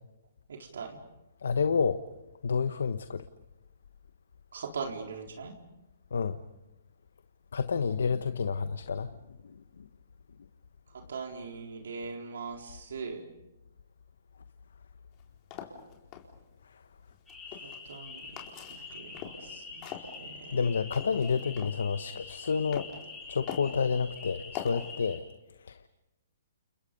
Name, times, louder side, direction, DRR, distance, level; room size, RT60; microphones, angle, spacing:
voice 1, 0.5-1.0 4.5-5.5 11.1-13.2 17.9-18.4 18.9-19.1 19.4-19.9 20.2-20.5, right 5 dB, 80° right, 2 dB, 4.1 m, -40 dB
voice 2, 1.4-2.0 2.4-3.2 6.1-6.4 7.5-9.2 9.4-9.6 20.5-22.9 23.3-25.2 25.7-25.8, left 5 dB, 85° left, 11 dB, 1.1 m, -29 dB
sound 1, 15.1-16.2 17.1-18.0 18.4-19.5 19.8-21.8 22.2-23.0 23.5-23.8 24.5-24.9, left 8 dB, 30° left, 4.2 m, -42 dB
sound 2, 17.3-25.2, left 4 dB, 5° left, 7.4 m, -46 dB
30.0 x 29.5 x 5.4 m, 0.95 s
hypercardioid pair, 150°, 0 cm